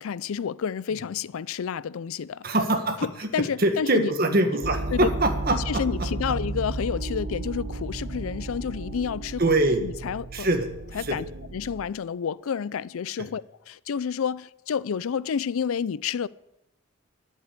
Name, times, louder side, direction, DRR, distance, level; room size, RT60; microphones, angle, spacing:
voice 1, 0.0-2.5 3.0-4.1 4.9-5.1 5.5-9.4 9.8-10.5 10.9-11.3 11.5-16.3, left 7 dB, 85° left, 0.4 m, -30 dB
voice 2, 2.4-3.3 3.6-5.8 9.4-9.8 10.3-10.7 11.0-11.2 13.2-13.3, right 2 dB, 45° right, 1.5 m, -23 dB
sound 1, 4.6-11.9, right 2 dB, 75° right, 1.0 m, -33 dB
11.0 x 8.3 x 8.4 m
head